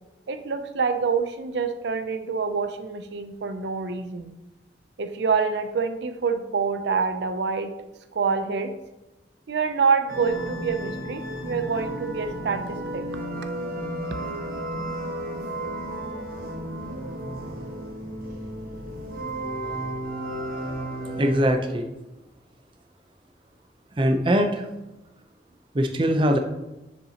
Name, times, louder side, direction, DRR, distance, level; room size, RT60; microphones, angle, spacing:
voice 1, 0.3-4.3 5.0-7.7 8.1-8.7 9.5-13.0, right 5 dB, 75° right, 8 dB, 0.5 m, -26 dB
sound 1, 10.1-21.5, right 1 dB, 55° right, 1.3 m, -33 dB
voice 2, 21.2-21.9 24.0-24.7 25.7-26.4, equal, 30° right, 5 dB, 0.5 m, -22 dB
7.0 x 6.6 x 2.9 m, 1.0 s
head